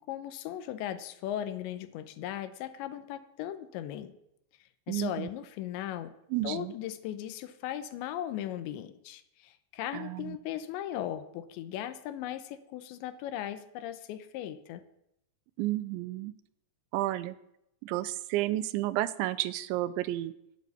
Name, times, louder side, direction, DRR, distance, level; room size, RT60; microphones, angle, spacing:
voice 1, 0.1-4.1 4.9-6.1 6.4-14.8, left 11 dB, 85° left, 11 dB, 3.1 m, -37 dB
voice 2, 4.9-5.3 6.3-6.7 9.9-10.4 15.6-16.3 16.9-17.4 17.8-20.3, right 15 dB, 85° right, 14 dB, 3.0 m, -31 dB
12.0 x 8.7 x 9.2 m, 0.80 s
omnidirectional pair, 5.3 m